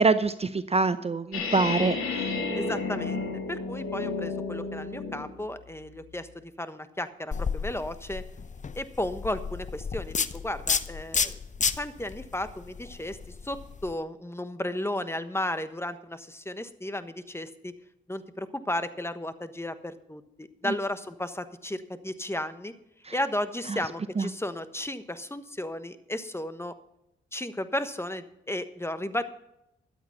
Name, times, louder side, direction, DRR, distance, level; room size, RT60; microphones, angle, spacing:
voice 1, 0.0-2.3 20.6-20.7 23.0-23.2 23.7-23.8 24.2-24.3, right 4 dB, 30° right, 12 dB, 0.7 m, -25 dB
sound 1, 1.3-5.3, left 3 dB, 85° left, 2.8 m, -31 dB
voice 2, 2.5-6.3 6.6-8.2 8.7-11.4 11.8-13.2 13.4-17.7 18.1-22.7 23.1-26.7 27.3-29.2, left 1 dB, 10° left, 11 dB, 1.2 m, -34 dB
sound 2, 7.3-13.9, left 5 dB, 35° left, 0.8 m, -32 dB
13.0 x 9.0 x 5.8 m, 0.82 s
supercardioid pair, 50°, 21 cm